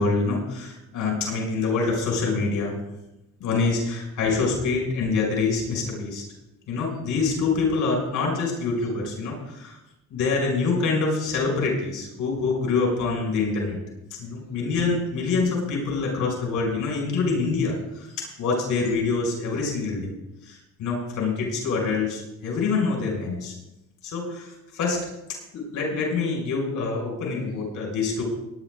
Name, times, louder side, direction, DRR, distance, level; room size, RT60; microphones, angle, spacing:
voice 1, 0.0-2.7 3.4-6.2 6.7-9.8 10.1-13.8 14.2-18.1 18.4-20.1 20.4-23.5 24.0-25.0 25.5-28.2, left 4 dB, 80° left, -1 dB, 6.0 m, -25 dB
20.5 x 10.5 x 3.9 m, 0.92 s
cardioid pair, 90°, 30 cm